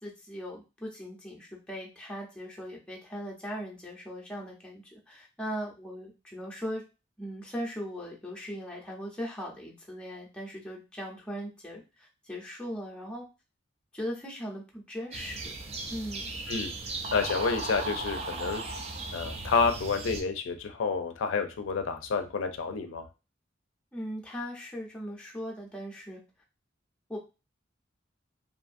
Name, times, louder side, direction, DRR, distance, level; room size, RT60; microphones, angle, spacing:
voice 1, 0.0-6.8 7.2-13.2 13.9-15.5 15.9-16.3 23.9-26.2 27.1-27.2, equal, 5° left, -3 dB, 0.6 m, -39 dB
sound 1, 15.1-20.2, right 2 dB, 35° right, 0.4 m, -36 dB
voice 2, 17.1-18.6 19.1-23.0, left 5 dB, 85° left, 7 dB, 0.4 m, -29 dB
2.6 x 2.5 x 2.4 m, 0.29 s
head